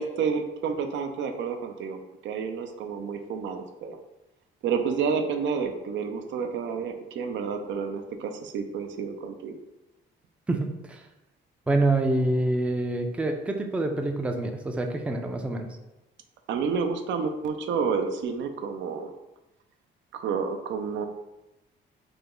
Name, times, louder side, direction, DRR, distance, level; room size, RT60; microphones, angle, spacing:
voice 1, 0.0-4.0 4.6-9.6 16.5-19.1 20.1-21.1, right 6 dB, 70° right, 5 dB, 0.4 m, -30 dB
voice 2, 10.5-11.0 11.7-15.7, right 2 dB, 5° right, 4 dB, 0.3 m, -26 dB
3.3 x 2.0 x 3.6 m, 0.97 s
cardioid pair, 90°, 20 cm